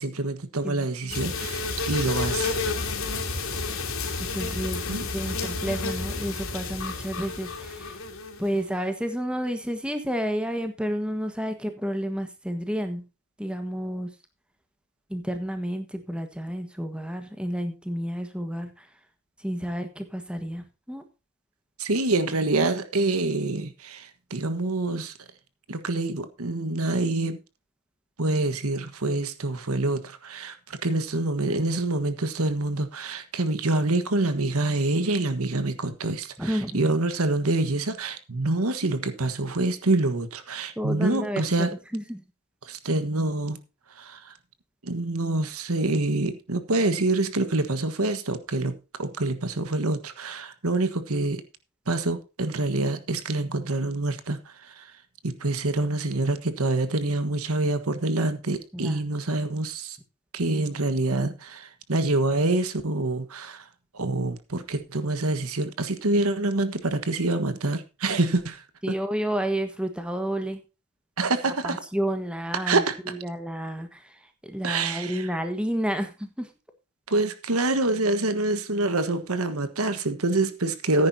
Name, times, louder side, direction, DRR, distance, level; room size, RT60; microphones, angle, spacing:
voice 1, 0.0-2.5 4.9-5.1 21.8-25.1 25.7-27.4 28.2-41.7 42.6-43.6 43.9-44.3 44.8-51.4 51.9-54.9 55.2-60.0 60.3-63.7 63.9-69.0 71.2-71.8 72.7-72.9 74.6-75.3 77.1-81.1, right 2 dB, 80° right, 1.4 m, -26 dB
voice 2, 0.6-1.3 4.2-4.8 5.1-8.0 8.4-13.0 13.4-14.1 15.1-18.9 19.4-21.0 36.4-36.8 40.8-42.2 58.7-59.0 68.8-70.6 71.6-74.1 74.4-76.5, equal, 5° right, 1.4 m, -30 dB
sound 1, 1.1-8.6, left 3 dB, 70° left, 3.4 m, -31 dB
15.0 x 9.8 x 2.8 m
head